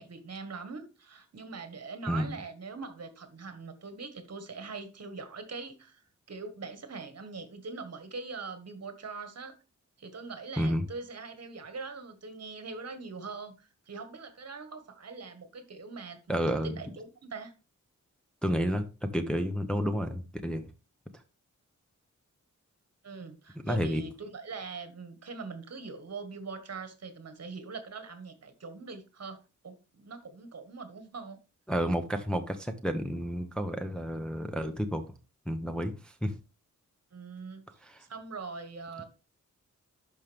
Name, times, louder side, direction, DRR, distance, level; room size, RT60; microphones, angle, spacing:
voice 1, 0.0-9.5 10.0-17.5 23.0-31.4 37.1-37.7 38.0-39.0, right 4 dB, 55° right, 1.6 m, -42 dB
voice 2, 2.1-2.4 10.6-10.8 16.3-16.8 18.4-20.7 21.1-21.2 23.6-24.0 31.7-35.0 35.5-36.4 37.8-38.1, equal, 5° left, 0.7 m, -31 dB
11.5 x 5.2 x 3.4 m
wide cardioid pair, 145°, 31 cm